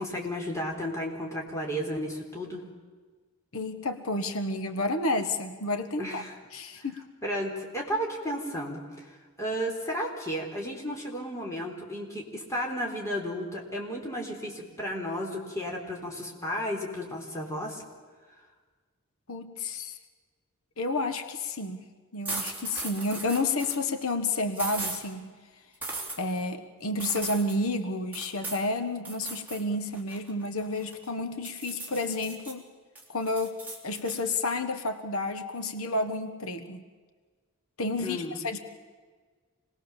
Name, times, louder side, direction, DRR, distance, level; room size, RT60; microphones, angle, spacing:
voice 1, 0.0-2.6 6.0-6.3 7.2-17.8 38.0-38.4, equal, 15° left, -1 dB, 4.0 m, -33 dB
voice 2, 3.5-6.2 6.5-7.0 19.3-20.0 20.8-21.8 22.1-25.3 26.2-32.7 33.1-33.6 33.8-36.8 37.8-38.6, left 2 dB, 80° left, 8 dB, 1.4 m, -30 dB
sound 1, 22.2-23.8 24.5-25.0 25.8-26.2 27.0-27.6 28.1-28.6 29.0-29.6 29.9-31.1 31.4-32.5 32.9-34.2, right 2 dB, 10° right, 3.3 m, -37 dB
26.5 x 20.0 x 7.3 m, 1.5 s
head